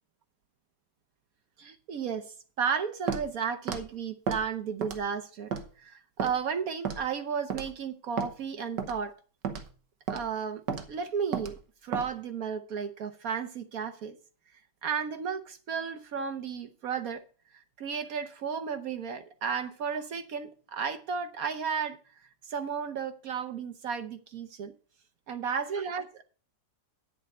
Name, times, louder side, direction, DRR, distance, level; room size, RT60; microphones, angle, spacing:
voice 1, 1.6-2.3 2.6-5.5 5.8-9.1 10.1-10.6 10.9-14.2 14.8-17.2 17.5-22.0 22.4-24.7 25.3-26.2, right 6 dB, 60° right, 9 dB, 1.2 m, -33 dB
Walk footsteps, 3.1-3.3 3.7-3.8 4.3-4.4 4.8-5.1 5.5-5.7 6.2-6.3 6.9-7.1 7.5-7.7 8.2-8.3 8.8-9.0 9.4-9.7 10.1-10.2 10.7-10.9 11.3-11.5 11.9-12.1, right 6 dB, 80° right, 1.8 m, -32 dB
9.2 x 7.5 x 5.3 m, 0.40 s
omnidirectional pair, 1.8 m